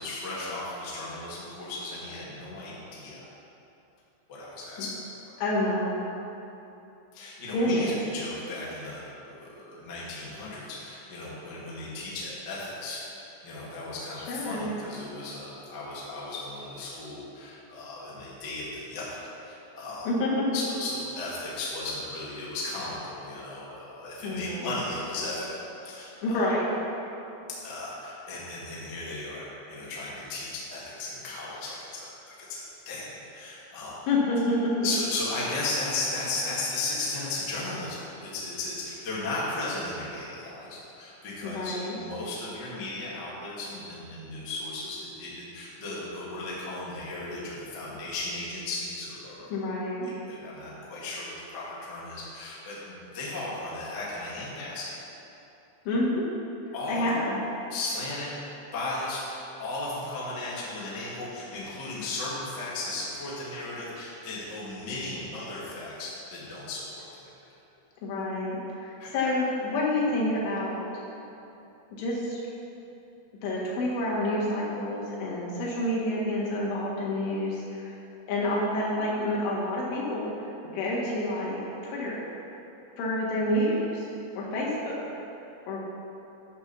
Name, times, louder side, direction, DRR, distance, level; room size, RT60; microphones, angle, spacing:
voice 1, 0.0-3.3 4.3-4.9 7.1-19.0 19.4-20.1 20.5-26.5 27.6-33.0 33.3-34.0 34.8-49.7 50.0-55.0 56.7-57.1 57.7-58.3 58.7-67.3 69.0-69.3, left 2 dB, 60° left, -7 dB, 1.1 m, -36 dB
voice 2, 5.4-6.0 7.5-8.0 14.2-14.7 20.1-20.5 24.2-24.7 26.2-26.7 34.1-34.7 41.4-42.0 49.5-50.1 55.9-56.2 56.9-57.4 68.0-70.9 72.0-72.4 73.4-77.9 78.3-80.5 80.7-82.2 83.0-84.1 84.4-85.0 85.7-85.8, left 1 dB, 85° left, -5 dB, 4.3 m, -28 dB
11.0 x 4.5 x 6.8 m, 2.9 s
omnidirectional pair, 5.4 m